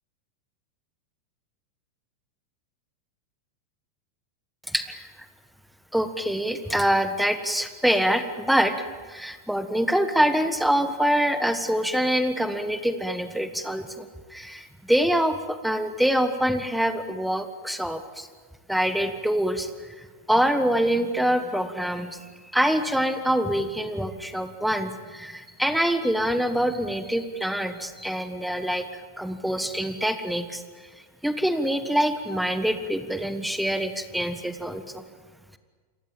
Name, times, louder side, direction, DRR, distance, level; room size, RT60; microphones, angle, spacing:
voice 1, 4.7-5.1 5.9-8.8 9.1-18.3 18.7-19.7 20.0-22.2 22.5-30.6 31.2-35.0, equal, ahead, 10 dB, 1.4 m, -25 dB
29.5 x 23.0 x 7.4 m, 1.5 s
figure-of-eight pair, 90°, 0 cm